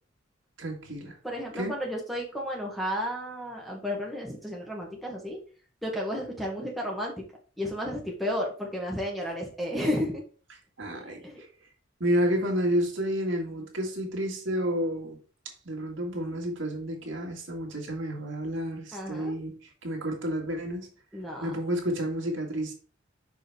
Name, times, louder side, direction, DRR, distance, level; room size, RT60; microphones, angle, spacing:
voice 1, 0.6-1.2 1.5-1.7 10.8-11.2 12.0-15.2 15.7-20.9 21.4-22.7, equal, 75° right, 0 dB, 1.9 m, -30 dB
voice 2, 1.2-5.4 5.8-7.2 7.6-10.2 10.9-11.4 18.9-19.3 21.1-21.5, equal, ahead, -2 dB, 1.5 m, -32 dB
6.1 x 4.8 x 3.4 m, 0.39 s
head